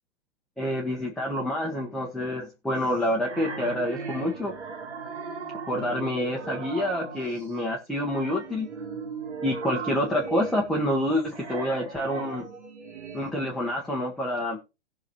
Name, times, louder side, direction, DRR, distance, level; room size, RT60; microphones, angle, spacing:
voice 1, 0.6-4.5 5.7-8.7 9.4-12.4 13.1-14.6, left 1 dB, ahead, -2 dB, 1.1 m, -27 dB
sound 1, 2.7-7.5 8.0-13.3, right 4 dB, 80° right, 2.6 m, -38 dB
17.5 x 6.0 x 2.9 m, 0.28 s
hypercardioid pair, 135°, 34 cm